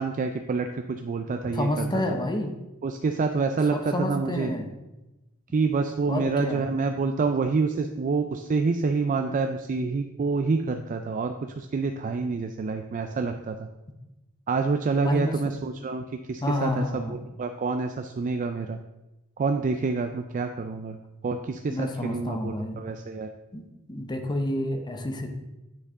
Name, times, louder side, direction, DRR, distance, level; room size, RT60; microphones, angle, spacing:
voice 1, 0.0-2.0 2.8-4.5 5.5-13.7 14.5-18.8 19.4-21.0 21.2-23.3, right 4 dB, 35° right, 6 dB, 0.3 m, -27 dB
voice 2, 1.4-2.5 3.7-4.7 6.1-6.7 15.0-15.4 16.4-17.2 21.7-22.8 23.5-23.6 23.9-25.3, left 1 dB, 20° left, 5 dB, 0.8 m, -29 dB
9.6 x 4.6 x 3.6 m, 1.0 s
head